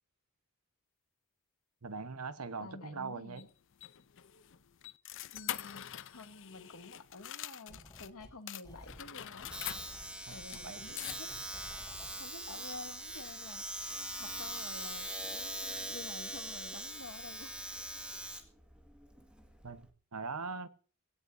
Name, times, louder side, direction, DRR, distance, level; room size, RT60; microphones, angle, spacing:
voice 1, 1.8-3.4 10.3-10.4 10.6-11.0 19.6-20.7, right 4 dB, 80° right, 1.2 m, -41 dB
voice 2, 2.6-3.5 5.3-9.5 10.3-11.3 12.2-13.9 14.2-17.6, left 2 dB, 90° left, 1.9 m, -50 dB
sound 1, 3.4-8.1 8.5-11.5, left 12 dB, 60° left, 0.7 m, -45 dB
sound 2, 7.7-8.4 8.6-12.2, equal, 15° left, 4.0 m, -55 dB
Domestic sounds home sounds, 9.5-19.9, right 1 dB, 5° right, 1.9 m, -42 dB
21.0 x 17.0 x 2.7 m
head